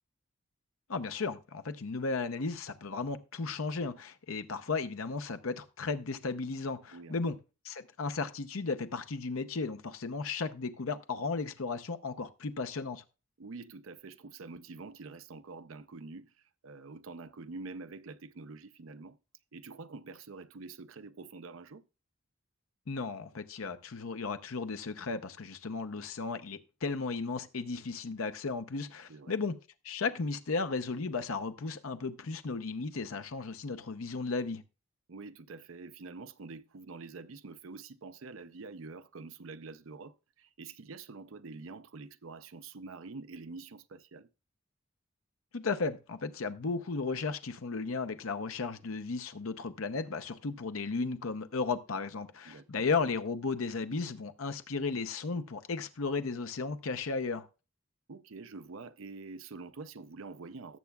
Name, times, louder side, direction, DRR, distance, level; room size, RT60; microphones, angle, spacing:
voice 1, 0.9-7.4 7.6-13.0 22.9-29.6 29.8-34.6 45.5-57.5, left 4 dB, 85° left, 0.8 m, -35 dB
voice 2, 6.9-7.3 13.4-19.2 19.5-21.8 29.1-29.3 35.1-44.3 52.5-52.9 58.1-60.8, right 3 dB, 75° right, 0.6 m, -46 dB
18.0 x 7.0 x 2.3 m
head